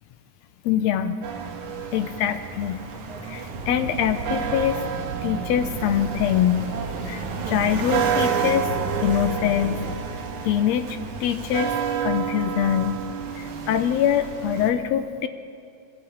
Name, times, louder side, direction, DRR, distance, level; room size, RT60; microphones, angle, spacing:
voice 1, 0.7-1.2 1.9-2.8 3.3-4.8 5.2-6.7 7.0-8.7 9.0-9.8 10.4-11.8 12.0-13.0 13.4-15.3, left 10 dB, 75° left, 9 dB, 1.9 m, -24 dB
sound 1, 1.2-14.7, right 7 dB, 85° right, 3.0 m, -30 dB
sound 2, 3.5-10.0, right 4 dB, 50° right, 2.3 m, -34 dB
21.5 x 14.5 x 8.6 m, 2.4 s
omnidirectional pair, 3.4 m